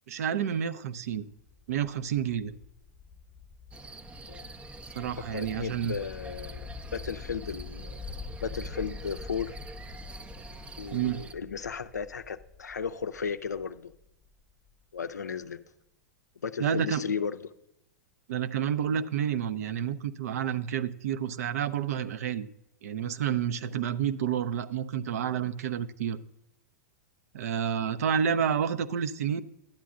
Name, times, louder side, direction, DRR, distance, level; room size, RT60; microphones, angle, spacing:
voice 1, 0.1-1.3 1.7-2.5 4.9-5.9 10.9-11.2 16.6-17.0 18.3-22.5 22.8-26.2 27.3-29.4, right 8 dB, 65° right, 14 dB, 0.5 m, -29 dB
sound 1, 1.5-14.7, left 4 dB, 5° left, 0.8 m, -45 dB
sound 2, 3.7-11.3, right 3 dB, 15° right, 0.4 m, -46 dB
voice 2, 5.3-8.0 8.4-9.6 10.8-13.9 14.9-15.6 16.4-17.5, left 6 dB, 85° left, 10 dB, 0.5 m, -35 dB
11.5 x 9.1 x 2.4 m, 0.85 s
figure-of-eight pair, 100°, 9 cm